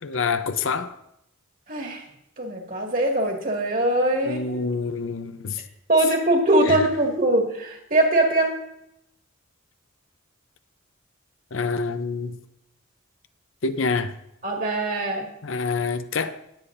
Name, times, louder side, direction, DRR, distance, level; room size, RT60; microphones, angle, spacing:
voice 1, 0.0-1.0 4.2-5.6 6.6-6.9 11.5-12.4 13.6-14.2 15.4-16.4, left 4 dB, 65° left, 0.7 m, -27 dB
voice 2, 1.7-2.0 2.4-4.4 5.9-8.5 14.4-15.3, right 1 dB, 40° right, 2.1 m, -22 dB
19.5 x 8.5 x 2.6 m
head